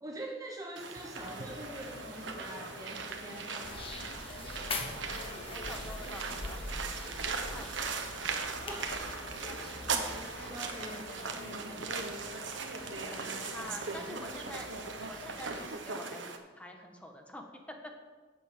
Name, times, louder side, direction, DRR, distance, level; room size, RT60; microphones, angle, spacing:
voice 1, 0.0-3.9 8.6-8.9 9.6-12.0, right 1 dB, 20° right, 1 dB, 0.9 m, -45 dB
sound 1, 0.8-16.4, right 5 dB, 85° right, 1.3 m, -39 dB
sound 2, 1.2-15.7, left 2 dB, 60° left, 2.1 m, -47 dB
sound 3, 3.6-10.5, left 3 dB, 30° left, 1.4 m, -43 dB
voice 2, 4.9-8.1 13.0-14.7 15.0-17.9, left 1 dB, 5° left, 3 dB, 1.5 m, -48 dB
10.5 x 8.0 x 7.6 m, 1.4 s
head